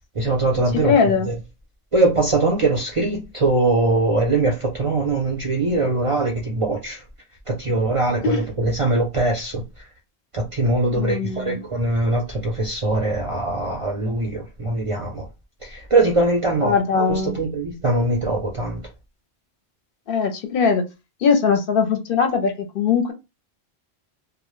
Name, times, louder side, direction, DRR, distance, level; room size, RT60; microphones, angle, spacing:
voice 1, 0.2-1.3 1.9-7.0 7.5-9.6 10.3-15.3 15.6-18.8, right 2 dB, 45° right, 0.4 m, -22 dB
voice 2, 0.8-1.3 8.2-8.4 11.0-11.6 16.6-17.4 20.1-20.8 21.2-23.1, left 5 dB, 65° left, 0.7 m, -20 dB
2.1 x 2.0 x 3.0 m
omnidirectional pair, 1.1 m